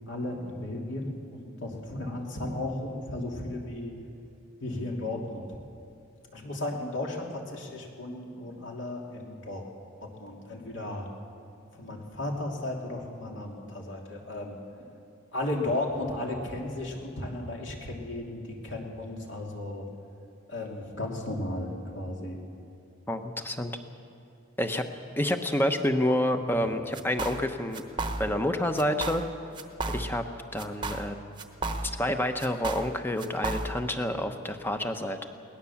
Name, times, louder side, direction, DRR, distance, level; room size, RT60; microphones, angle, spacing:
voice 1, 0.1-3.9 4.6-5.5 6.3-9.7 10.0-11.1 11.7-14.6 15.3-19.9 20.5-22.4, left 1 dB, 60° left, 0 dB, 2.9 m, -35 dB
voice 2, 23.1-23.7 24.6-24.8 25.2-27.8 28.2-29.2 29.9-30.2 30.5-31.2 32.0-35.2, left 1 dB, 10° left, 6 dB, 1.0 m, -28 dB
sound 1, 26.9-27.5 27.7-28.5 28.8-29.3 29.5-30.3 30.6-32.1 32.4-33.9, right 2 dB, 20° right, 1.1 m, -34 dB
22.0 x 18.5 x 7.2 m, 2.5 s
head